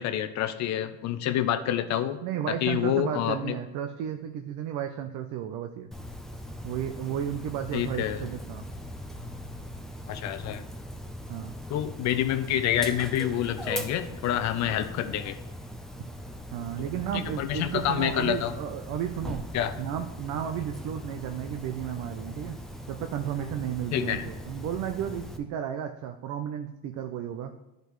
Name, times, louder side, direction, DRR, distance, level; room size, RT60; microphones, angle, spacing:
voice 1, 0.0-2.2 2.5-3.6 7.7-8.3 10.1-10.6 11.7-15.4 17.1-18.5 19.5-19.7 23.9-24.3, left 11 dB, 55° left, 11 dB, 0.6 m, -28 dB
voice 2, 2.2-5.9 6.6-8.7 11.3-11.5 14.6-14.8 16.0-16.1 16.5-19.5 19.8-22.6 22.9-27.5, right 9 dB, 60° right, 6 dB, 0.6 m, -33 dB
Dog, 5.9-25.4, equal, ahead, 0.5 m, -40 dB
11.0 x 5.2 x 3.1 m, 0.97 s
cardioid pair, 130°, 33 cm